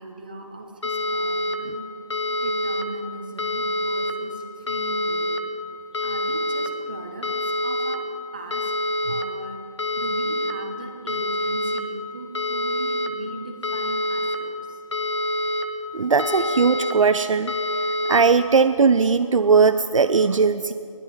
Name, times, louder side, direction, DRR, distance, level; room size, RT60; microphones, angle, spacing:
voice 1, 0.0-1.9 2.4-5.3 5.9-8.0 8.3-8.7 9.1-9.6 9.9-14.8, right 2 dB, 15° right, 4 dB, 0.5 m, -39 dB
sound 1, 0.8-1.6 2.1-2.8 3.4-4.1 4.7-5.4 5.9-6.7 7.2-8.0 8.5-9.2 9.8-10.5 11.1-11.8 12.3-13.1 13.6-14.4 14.9-15.6 16.2-16.9 17.5-18.2, left 1 dB, 60° left, 0.9 m, -26 dB
voice 2, 15.9-17.5 18.1-20.7, right 5 dB, 75° right, 10 dB, 0.4 m, -18 dB
11.5 x 9.7 x 6.2 m, 2.7 s
figure-of-eight pair, 155°, 17 cm